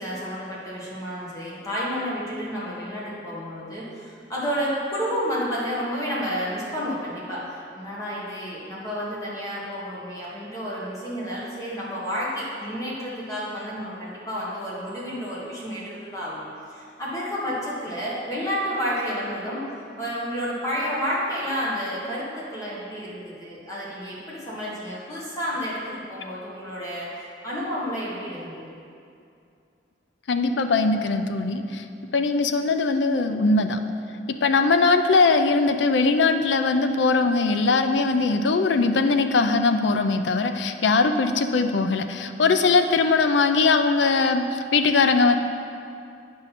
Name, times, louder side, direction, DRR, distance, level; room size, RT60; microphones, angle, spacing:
voice 1, 0.0-16.4 16.7-19.6 20.0-28.6, equal, 20° left, -7 dB, 1.5 m, -30 dB
voice 2, 30.3-31.8 32.1-33.8 34.4-45.4, left 4 dB, 85° left, 7 dB, 0.5 m, -21 dB
9.0 x 5.6 x 4.2 m, 2.5 s
head